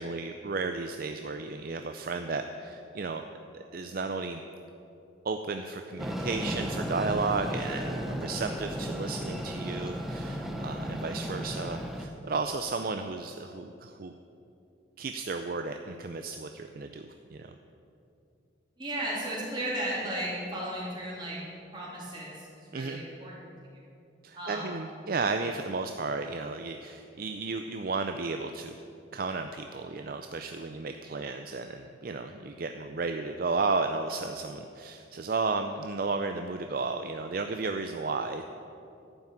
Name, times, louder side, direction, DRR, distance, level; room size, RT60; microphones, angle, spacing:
voice 1, 0.0-3.2 3.5-4.4 5.2-14.1 15.0-17.5 22.7-23.0 24.2-28.8 29.1-38.4, right 4 dB, 50° right, 6 dB, 0.5 m, -33 dB
Train, 6.0-12.1, equal, ahead, 0.7 m, -34 dB
voice 2, 18.8-21.4 21.7-23.5 24.3-24.7, right 1 dB, 25° right, -6 dB, 3.3 m, -35 dB
12.0 x 5.8 x 8.9 m, 2.6 s
head